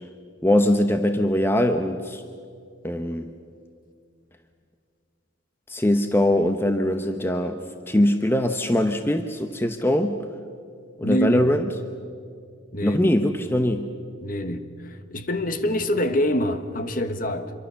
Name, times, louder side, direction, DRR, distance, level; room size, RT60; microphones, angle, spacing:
voice 1, 0.4-2.2 2.8-3.3 5.7-10.2 11.0-11.7 12.8-13.9, left 1 dB, 10° left, 7 dB, 0.8 m, -22 dB
voice 2, 11.0-11.5 12.7-13.1 14.2-17.5, equal, 45° left, 9 dB, 1.3 m, -26 dB
26.0 x 23.0 x 6.9 m, 2.2 s
head